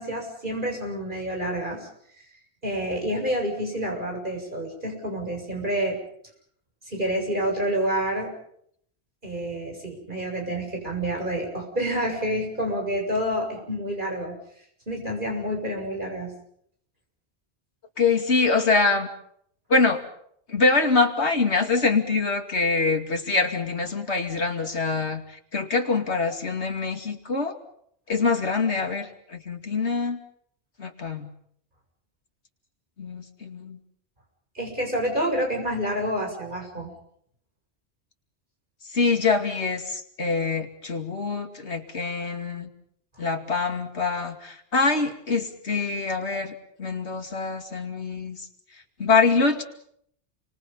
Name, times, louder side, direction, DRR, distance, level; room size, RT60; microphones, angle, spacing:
voice 1, 0.0-1.9 2.6-6.0 6.9-8.3 9.2-14.4 14.9-16.3 34.5-36.9, equal, 50° right, 1 dB, 7.7 m, -28 dB
voice 2, 18.0-19.1 19.7-20.0 20.5-27.6 28.1-30.2 30.8-31.3 33.0-33.8 38.9-42.7 43.2-48.4 49.0-49.6, left 4 dB, 80° left, 4 dB, 2.8 m, -24 dB
29.0 x 25.0 x 5.6 m, 0.68 s
omnidirectional pair, 1.1 m